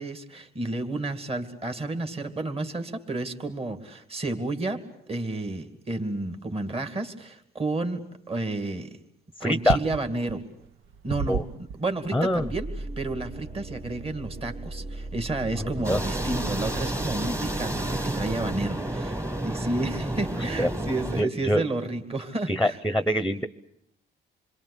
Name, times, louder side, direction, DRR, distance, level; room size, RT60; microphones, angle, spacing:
voice 1, 0.0-4.8 5.1-8.0 8.3-9.0 9.4-10.4 11.0-11.4 11.8-22.8, right 2 dB, 30° right, 7 dB, 2.5 m, -31 dB
voice 2, 9.4-9.8 11.3-11.4 12.1-12.5 15.6-16.0 20.6-20.7 21.2-21.6 22.5-23.5, left 1 dB, ahead, 13 dB, 1.0 m, -24 dB
sound 1, 9.6-15.1, right 7 dB, 80° right, 1.2 m, -35 dB
sound 2, 12.3-18.5, right 2 dB, 50° right, 2.0 m, -37 dB
sound 3, 15.8-21.2, right 1 dB, 15° right, 1.7 m, -30 dB
27.5 x 22.5 x 8.5 m, 0.70 s
cardioid pair, 90°, 20 cm